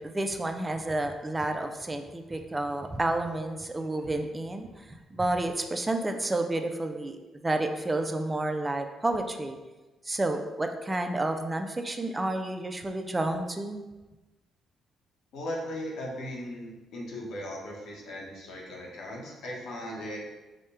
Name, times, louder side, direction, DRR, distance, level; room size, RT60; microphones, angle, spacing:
voice 1, 0.0-4.7 5.1-9.6 10.1-13.8, right 2 dB, 20° right, 5 dB, 0.4 m, -30 dB
voice 2, 15.3-20.2, left 1 dB, 80° left, -2 dB, 1.1 m, -38 dB
4.9 x 2.2 x 4.2 m, 1.1 s
cardioid pair, 90°, 0 cm